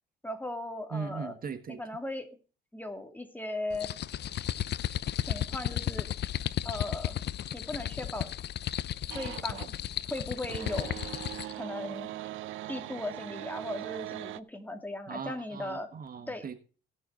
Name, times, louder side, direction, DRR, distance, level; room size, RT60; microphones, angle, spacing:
voice 1, 0.2-1.4 1.7-2.3 2.7-3.9 5.3-6.1 6.6-7.2 7.5-8.3 9.1-9.7 10.1-11.0 11.5-12.1 12.7-15.9 16.3-16.4, left 1 dB, 10° left, 5 dB, 2.4 m, -37 dB
voice 2, 0.9-1.8 15.1-16.6, right 6 dB, 45° right, 9 dB, 1.4 m, -39 dB
sound 1, 3.7-11.6, left 11 dB, 60° left, 0.6 m, -34 dB
sound 2, 9.1-9.8 10.1-14.4, right 16 dB, 80° right, 0.6 m, -40 dB
18.0 x 7.0 x 3.9 m, 0.37 s
cardioid pair, 90°, 20 cm